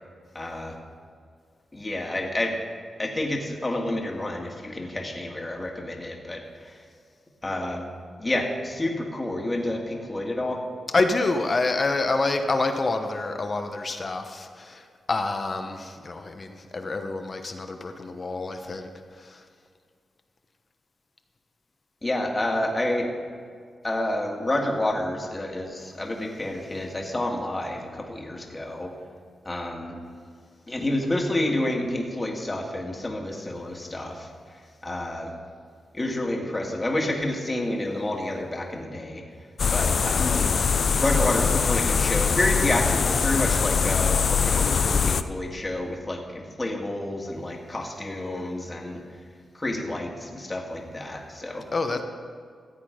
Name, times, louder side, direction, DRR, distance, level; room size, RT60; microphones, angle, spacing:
voice 1, 0.3-0.8 1.7-2.6 3.0-6.8 7.4-7.9 8.2-10.6 22.0-23.1 23.8-28.9 29.5-30.0 30.7-34.3 34.8-35.3 35.9-39.2 39.7-40.4 41.0-49.0 49.5-51.7, left 1 dB, 20° left, 1 dB, 1.8 m, -29 dB
voice 2, 10.9-18.9 19.2-19.4 40.2-40.6 51.7-52.0, left 3 dB, 40° left, 6 dB, 1.0 m, -27 dB
sound 1, 39.6-45.2, left 6 dB, 55° left, 0.5 m, -22 dB
15.0 x 8.3 x 5.1 m, 2.1 s
cardioid pair, 90°, 0 cm